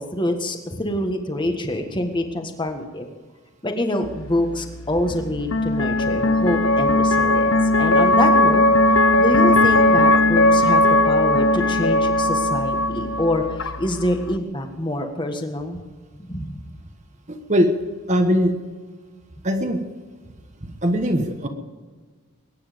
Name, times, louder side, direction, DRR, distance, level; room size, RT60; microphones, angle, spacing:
voice 1, 0.0-3.1 3.6-8.6 9.2-15.8 16.2-16.6, left 1 dB, 20° left, 5 dB, 1.6 m, -26 dB
sound 1, 4.0-14.4, left 1 dB, 65° left, 1.0 m, -18 dB
voice 2, 17.3-17.7 18.1-18.6 19.4-19.8 20.6-21.5, equal, 35° right, 5 dB, 1.4 m, -20 dB
22.0 x 10.0 x 5.2 m, 1.4 s
head